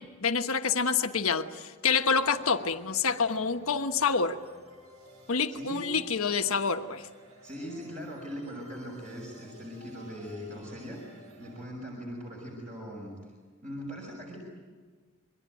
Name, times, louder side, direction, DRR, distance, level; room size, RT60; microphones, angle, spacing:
voice 1, 0.0-4.4 5.3-7.1, left 5 dB, 75° left, 7 dB, 1.3 m, -27 dB
sound 1, 2.1-11.7, equal, 70° right, 4.4 m, -54 dB
voice 2, 5.5-5.9 7.4-13.1 13.6-14.4, equal, 35° right, -2 dB, 5.6 m, -40 dB
27.5 x 22.5 x 9.3 m, 1.5 s
head